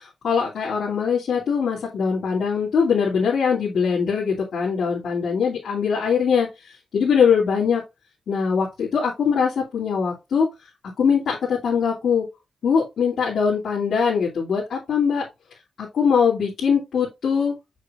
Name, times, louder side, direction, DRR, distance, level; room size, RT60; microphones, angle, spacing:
voice 1, 0.0-7.8 8.3-10.5 11.0-12.3 12.6-15.2 15.8-17.6, left 6 dB, 75° left, -6 dB, 2.8 m, -22 dB
7.0 x 6.3 x 2.5 m, 0.23 s
wide cardioid pair, 135°, 0 cm